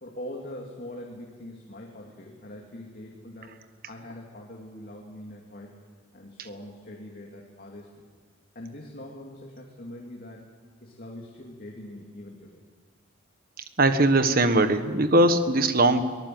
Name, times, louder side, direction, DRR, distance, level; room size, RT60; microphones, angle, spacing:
voice 1, 0.0-3.5 3.9-5.8 6.1-8.0 8.5-10.4 10.8-12.6, left 1 dB, 45° left, -1 dB, 2.8 m, -42 dB
voice 2, 13.8-16.1, right 2 dB, 45° right, 9 dB, 1.4 m, -20 dB
24.0 x 19.0 x 7.8 m, 1.5 s
head